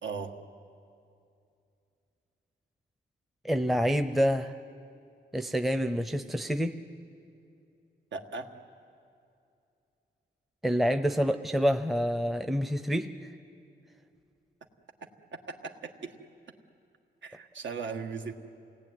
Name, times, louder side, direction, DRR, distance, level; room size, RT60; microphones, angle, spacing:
voice 1, 0.0-0.3 8.1-8.5 15.3-16.1 17.2-18.3, right 5 dB, 75° right, 4 dB, 1.8 m, -38 dB
voice 2, 3.4-4.5 5.3-6.7 10.6-13.3, equal, ahead, 8 dB, 0.7 m, -27 dB
29.0 x 18.5 x 9.5 m, 2.6 s
wide cardioid pair, 140°, 19 cm